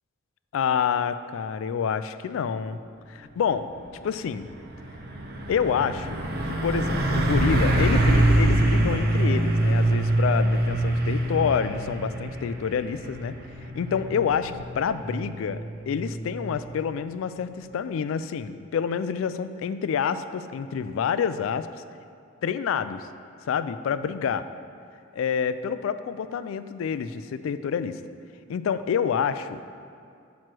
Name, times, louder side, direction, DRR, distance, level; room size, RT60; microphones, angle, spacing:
voice 1, 0.5-2.8 3.1-3.7 4.0-4.5 5.5-6.2 6.6-13.3 13.7-15.6 15.9-21.7 22.4-23.0 23.5-24.4 25.1-28.0 28.5-29.6, left 7 dB, 75° left, 12 dB, 0.3 m, -27 dB
Truck, 3.7-3.9 4.3-16.8, right 1 dB, 50° right, 0.7 m, -25 dB
9.0 x 3.1 x 6.0 m, 2.4 s
head